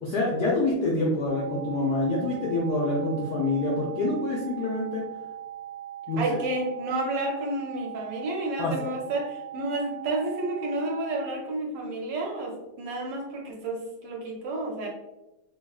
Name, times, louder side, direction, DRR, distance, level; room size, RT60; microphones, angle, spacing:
voice 1, 0.0-5.0 6.1-6.2 8.6-8.7, left 2 dB, 80° left, -3 dB, 0.9 m, -26 dB
sound 1, 1.3-11.3, right 11 dB, 90° right, 0.8 m, -40 dB
voice 2, 6.2-14.9, right 2 dB, 70° right, 0 dB, 1.1 m, -31 dB
3.4 x 2.9 x 2.3 m, 1.0 s
omnidirectional pair, 2.3 m